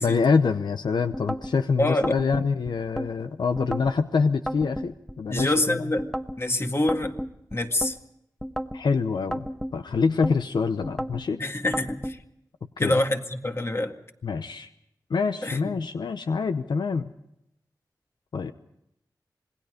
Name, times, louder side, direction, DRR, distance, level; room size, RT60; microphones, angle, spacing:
voice 1, 0.0-5.8 8.7-9.5 9.7-11.4 12.8-13.0 14.2-14.7 15.1-17.1 18.3-18.5, left 5 dB, 80° left, 9 dB, 0.8 m, -25 dB
sound 1, 1.1-1.5 2.0-3.1 3.6-4.0 4.5-5.5 6.0-6.4 6.9-7.9 8.4-8.8 9.3-10.4 10.8-11.2 11.7-12.2, equal, 5° left, 1.2 m, -32 dB
voice 2, 1.8-2.2 5.3-6.1 6.4-7.2 7.5-8.0 11.4-12.2 12.8-13.9 15.4-15.7, left 1 dB, 35° left, 5 dB, 2.0 m, -26 dB
27.0 x 19.5 x 5.1 m, 0.79 s
cardioid pair, 55°, 7 cm